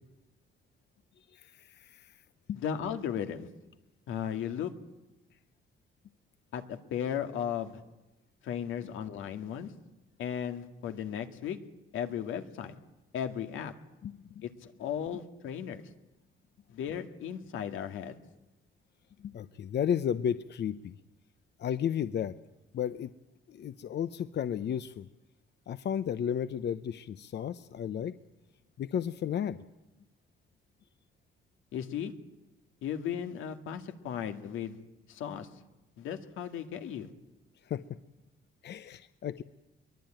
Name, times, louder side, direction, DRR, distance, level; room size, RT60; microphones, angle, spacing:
voice 1, 1.3-2.1 2.5-2.6 14.0-14.4 19.2-20.9 21.6-22.3 22.7-23.1 23.5-25.1 25.7-28.1 28.8-29.6 37.7-37.8 38.6-39.4, left 9 dB, 60° left, 12 dB, 0.9 m, -33 dB
voice 2, 2.5-3.5 4.1-4.7 6.5-7.8 8.4-9.7 10.2-11.6 11.9-12.7 13.1-13.7 14.4-15.8 16.7-18.2 31.7-32.1 32.8-34.8 35.1-35.5 36.0-37.1, left 9 dB, 85° left, 7 dB, 2.1 m, -36 dB
23.0 x 21.0 x 9.1 m, 1.0 s
cardioid pair, 90°, 20 cm